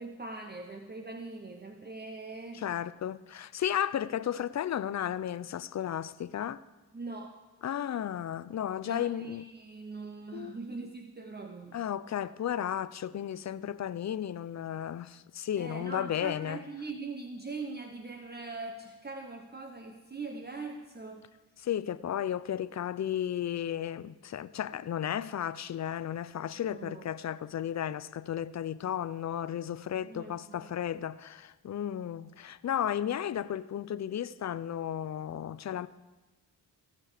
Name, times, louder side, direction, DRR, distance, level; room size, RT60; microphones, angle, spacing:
voice 1, 0.0-2.6 6.9-7.4 8.8-11.8 15.6-21.3 26.5-27.1 30.0-30.7, right 3 dB, 25° right, 1.0 m, -42 dB
voice 2, 2.5-6.6 7.6-9.5 10.3-10.5 11.7-16.6 21.6-35.9, left 10 dB, 45° left, 0.5 m, -34 dB
16.5 x 6.8 x 5.0 m
cardioid pair, 70°, 41 cm